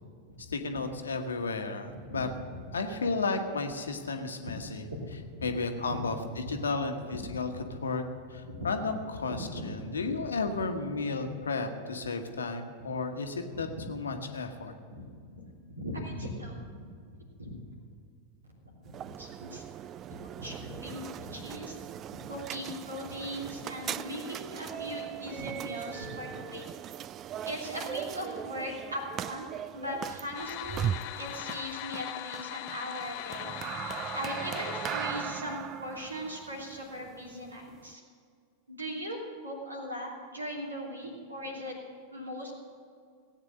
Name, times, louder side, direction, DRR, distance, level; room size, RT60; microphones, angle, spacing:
voice 1, 0.5-2.3 2.7-4.8 5.4-8.0 8.3-14.7, left 3 dB, 70° left, 6 dB, 1.2 m, -33 dB
voice 2, 1.8-2.2 4.4-4.5 4.9-5.0 5.3-5.5 5.9-6.0 6.4-6.5 7.1-7.5 8.5-8.6 9.3-10.2 13.5-13.9 14.9-15.1 15.4-15.5 15.8-16.9 17.4-17.5 18.6-18.7 19.0-19.6 20.1-21.8 22.3-26.6 27.4-29.5 29.7-30.9 31.2-33.5 34.1-38.0 38.7-39.2 39.4-41.7 42.1-42.5, equal, 80° right, -1 dB, 3.0 m, -39 dB
sound 1, 18.9-37.9, right 10 dB, 30° right, 0.3 m, -39 dB
sound 2, 30.3-35.4, left 18 dB, 45° left, 0.4 m, -40 dB
17.5 x 8.8 x 6.5 m, 2.2 s
figure-of-eight pair, 90°, 0 cm